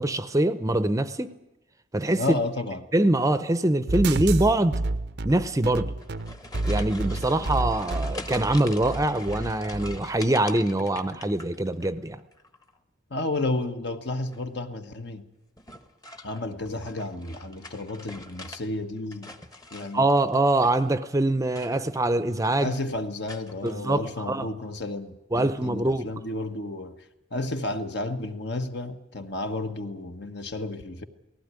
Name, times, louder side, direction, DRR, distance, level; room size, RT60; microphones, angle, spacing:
voice 1, 0.0-1.3 1.9-2.2 2.9-4.8 5.2-5.9 6.7-12.2 19.9-22.7 23.6-24.0 24.3-24.4 25.3-26.1, right 1 dB, 15° right, 0.7 m, -24 dB
voice 2, 2.1-2.9 13.1-15.3 16.2-19.3 19.7-20.1 22.6-27.0 27.3-31.0, left 2 dB, 60° left, 1.4 m, -32 dB
sound 1, 3.9-10.0, right 2 dB, 60° right, 0.7 m, -30 dB
sound 2, 5.9-11.9 12.2-12.8 14.2-14.6 15.6-18.6 19.0-21.0 21.5-22.1 22.3-22.8 23.3-23.7, left 2 dB, 20° left, 1.1 m, -44 dB
18.5 x 16.0 x 9.7 m
head